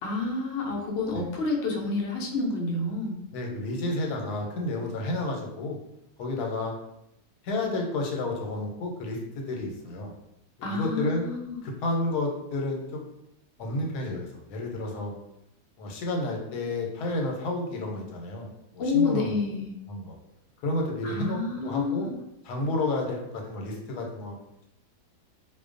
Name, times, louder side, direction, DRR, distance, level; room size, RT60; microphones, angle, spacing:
voice 1, 0.0-3.1 10.6-11.6 18.8-19.7 21.0-22.1, left 3 dB, 65° left, -1 dB, 0.6 m, -29 dB
voice 2, 3.3-5.8 6.2-6.7 7.4-10.1 10.6-11.3 11.6-13.0 13.6-15.1 15.8-18.5 18.7-19.5 19.9-20.2 20.6-22.1 22.4-24.4, left 2 dB, 85° left, 1 dB, 1.1 m, -31 dB
2.5 x 2.2 x 2.4 m, 0.82 s
omnidirectional pair, 1.6 m